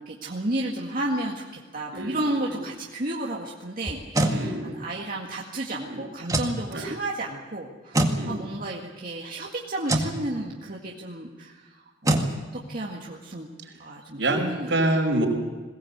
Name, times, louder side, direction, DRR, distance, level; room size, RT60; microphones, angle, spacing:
voice 1, 0.0-1.4 1.7-12.3 12.7-13.5 13.8-14.7, right 1 dB, 50° right, -3 dB, 2.0 m, -32 dB
voice 2, 1.9-2.6 4.3-4.7 5.9-6.0 6.7-6.9 8.1-8.3 14.2-15.3, right 1 dB, 75° right, 1 dB, 5.3 m, -26 dB
sound 1, 3.9-4.4 6.2-6.6 7.9-8.2 9.8-10.1 12.0-12.3, right 1 dB, 20° right, 2.1 m, -23 dB
21.5 x 18.5 x 8.1 m, 1.3 s
head